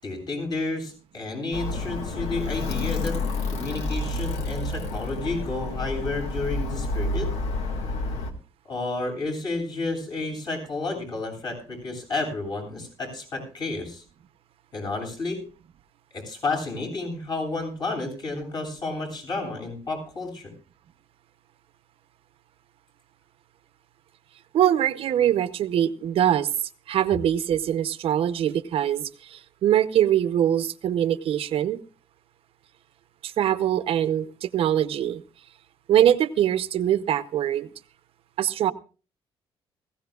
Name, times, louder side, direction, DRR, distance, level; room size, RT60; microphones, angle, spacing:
voice 1, 0.0-3.2 3.5-7.3 8.7-14.0 14.7-15.4 16.1-20.5, left 3 dB, 45° left, 0 dB, 7.7 m, -31 dB
Alarm, 1.5-8.3, left 2 dB, 85° left, 1.9 m, -29 dB
voice 2, 24.5-26.5 26.9-31.8 33.2-35.2 35.9-37.7 38.4-38.7, right 11 dB, 70° right, 13 dB, 0.8 m, -23 dB
20.0 x 16.0 x 2.4 m, 0.37 s
cardioid pair, 115°, 10 cm